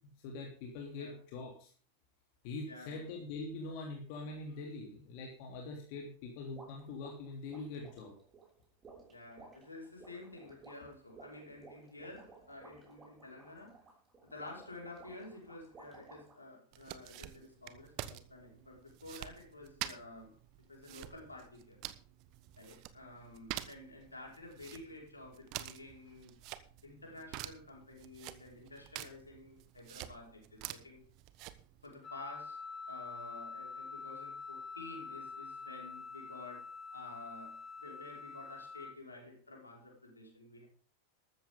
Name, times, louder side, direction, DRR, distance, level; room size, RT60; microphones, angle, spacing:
voice 1, 0.2-1.7 2.4-8.1, left 3 dB, 45° left, 1 dB, 3.1 m, -43 dB
voice 2, 2.7-3.1 9.1-13.9 14.2-20.4 20.7-21.8 22.6-26.3 26.8-31.0 31.8-40.7, left 2 dB, 80° left, 0 dB, 5.4 m, -51 dB
sound 1, 6.5-16.4, right 4 dB, 20° right, 6.2 m, -57 dB
sound 2, 16.7-31.9, right 14 dB, 40° right, 1.2 m, -48 dB
Wind instrument woodwind instrument, 32.0-39.0, left 4 dB, 20° left, 1.0 m, -46 dB
14.0 x 13.5 x 3.9 m, 0.42 s
figure-of-eight pair, 90°, 0 cm